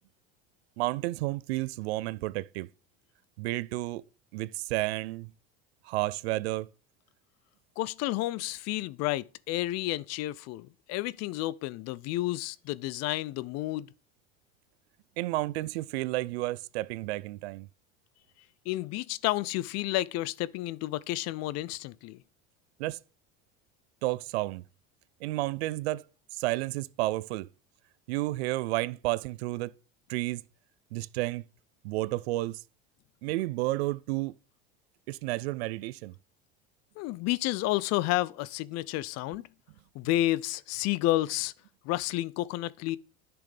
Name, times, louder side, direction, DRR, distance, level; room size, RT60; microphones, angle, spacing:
voice 1, 0.8-2.7 3.4-4.0 4.3-5.3 5.9-6.7 15.2-17.7 22.8-23.0 24.0-24.6 25.2-26.0 26.3-27.5 28.1-29.7 30.1-30.4 30.9-31.4 31.8-32.6 33.2-34.3 35.1-36.1, right 19 dB, 80° right, 0.5 m, -31 dB
voice 2, 7.8-13.9 18.7-22.2 37.0-39.4 39.9-41.5 41.9-43.0, left 16 dB, 55° left, 0.5 m, -31 dB
10.5 x 6.0 x 3.4 m
hypercardioid pair, 85°, 31 cm